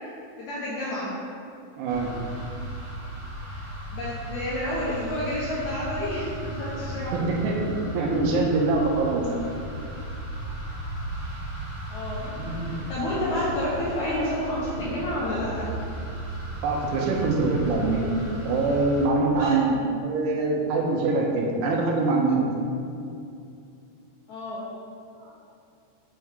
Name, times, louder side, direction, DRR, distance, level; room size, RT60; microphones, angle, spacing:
voice 1, 0.4-1.1 3.4-3.6 3.9-7.1 10.8-10.9 11.9-12.3 12.7-15.7 19.4-19.6 24.3-24.7 25.1-25.3, left 1 dB, 80° left, -7 dB, 1.6 m, -30 dB
voice 2, 1.8-2.1 7.1-7.6 7.9-9.3 12.4-12.8 16.6-18.1 18.5-22.4, right 3 dB, 85° right, 0 dB, 3.0 m, -24 dB
sound 1, 1.9-19.1, right 1 dB, 60° right, 1.4 m, -36 dB
6.8 x 6.3 x 3.5 m, 2.5 s
omnidirectional pair, 4.7 m